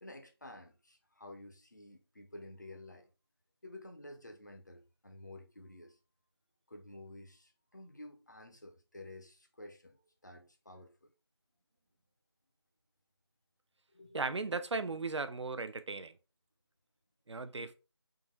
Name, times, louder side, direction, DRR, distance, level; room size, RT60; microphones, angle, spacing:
voice 1, 0.0-3.1 3.6-6.0 6.7-11.1 13.9-14.4, left 1 dB, 40° left, 0.5 m, -52 dB
voice 2, 14.1-16.1 17.3-17.7, right 3 dB, 85° right, 0.4 m, -36 dB
3.6 x 2.6 x 3.0 m
figure-of-eight pair, 175°, 14 cm